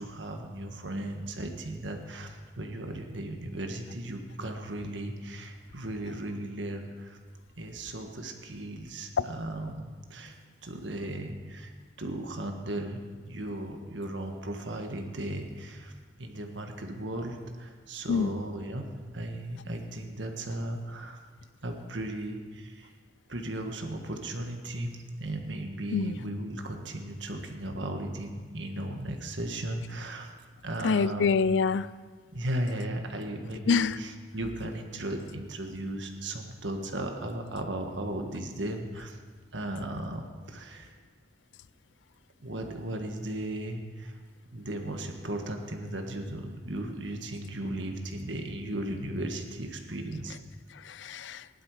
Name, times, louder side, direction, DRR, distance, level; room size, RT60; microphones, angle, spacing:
voice 1, 0.0-7.2 7.6-11.7 12.0-21.2 21.6-22.9 23.3-30.3 30.6-31.3 32.3-39.2 39.5-40.9 42.4-44.2 44.5-50.4, right 1 dB, 90° right, 4 dB, 1.6 m, -36 dB
voice 2, 30.8-31.9 33.7-34.0 50.9-51.4, left 5 dB, 85° left, 17 dB, 0.4 m, -25 dB
17.0 x 11.0 x 5.0 m, 1.5 s
head